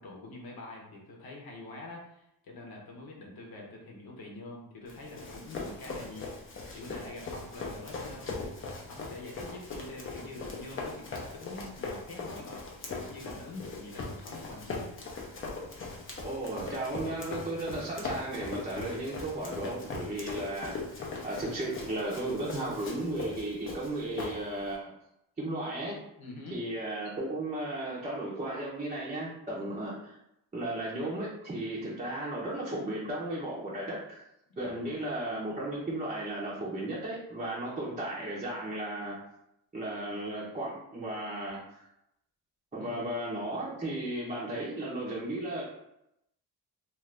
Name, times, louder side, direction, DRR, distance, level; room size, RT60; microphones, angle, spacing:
voice 1, 0.0-6.3 6.7-12.6 12.8-14.9 26.2-26.6 29.6-29.8 34.5-34.9 42.8-43.0, left 2 dB, 70° left, -1 dB, 1.0 m, -45 dB
Run, 4.9-24.7, left 3 dB, 35° left, 0.6 m, -40 dB
voice 2, 16.2-24.9 25.4-26.0 26.5-30.1 30.5-34.2 34.6-39.1 39.7-41.8 42.7-45.6, right 1 dB, 20° right, -7 dB, 0.7 m, -35 dB
2.6 x 2.5 x 3.3 m, 0.81 s
cardioid pair, 125°, 38 cm